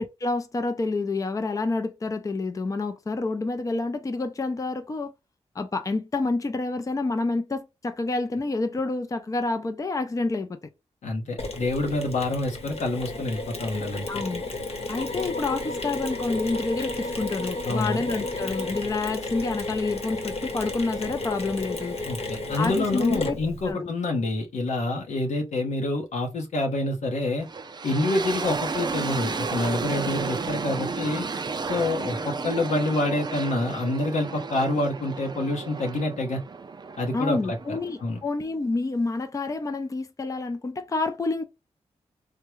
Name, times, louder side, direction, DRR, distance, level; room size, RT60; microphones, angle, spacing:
voice 1, 0.0-5.1 5.6-10.6 14.1-14.4 14.9-22.0 22.6-23.4 23.7-23.9 37.1-41.5, left 3 dB, 30° left, 0.4 m, -28 dB
voice 2, 11.0-14.1 17.6-18.0 22.0-27.5 27.8-31.3 31.7-36.4 37.0-38.2, left 2 dB, 90° left, 0.9 m, -27 dB
Mechanisms, 11.4-23.7, left 2 dB, 60° left, 1.0 m, -33 dB
sound 1, 27.4-38.3, right 4 dB, 40° right, 0.4 m, -33 dB
3.5 x 2.1 x 3.1 m
cardioid pair, 75°, 12 cm